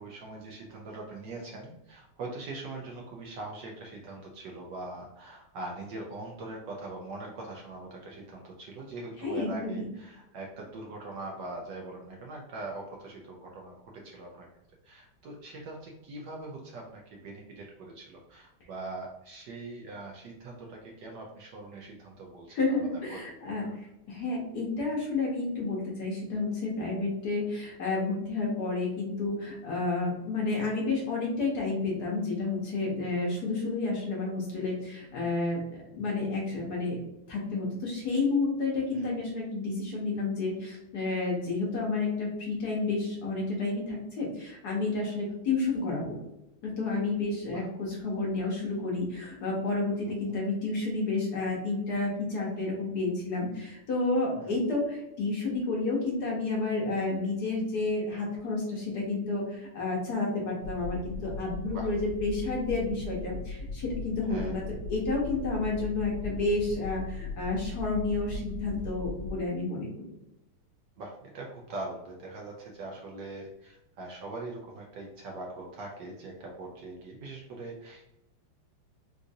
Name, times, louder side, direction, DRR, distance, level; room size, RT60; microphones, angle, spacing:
voice 1, 0.0-14.5 14.8-23.2 38.9-39.1 47.5-47.6 50.1-50.2 54.4-54.6 61.7-61.9 64.3-64.6 71.0-78.1, right 2 dB, 70° right, -1 dB, 1.1 m, -42 dB
voice 2, 9.2-9.9 22.5-35.6 35.9-37.0 37.3-46.2 46.6-64.6 64.9-70.1, left 3 dB, 60° left, -3 dB, 1.2 m, -30 dB
sound 1, 60.6-69.4, left 3 dB, 85° left, 1.5 m, -38 dB
4.0 x 2.5 x 2.5 m, 0.87 s
omnidirectional pair, 2.3 m